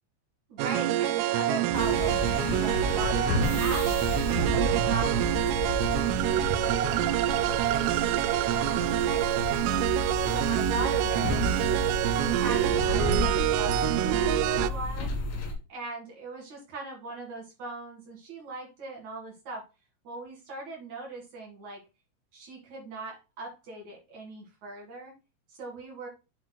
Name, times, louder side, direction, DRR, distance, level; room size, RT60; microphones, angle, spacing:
voice 1, 0.5-3.9 4.5-5.2 5.6-5.8 6.3-8.1 8.5-10.0 10.3-11.8 12.2-15.1 15.7-19.7 20.0-21.8 22.3-25.1 25.5-26.1, right 3 dB, 55° right, -2 dB, 2.2 m, -39 dB
sound 1, 0.6-14.7, right 14 dB, 85° right, 3.2 m, -26 dB
sound 2, 1.7-15.5, left 2 dB, 60° left, 2.5 m, -32 dB
9.2 x 8.2 x 2.2 m, 0.28 s
omnidirectional pair, 5.9 m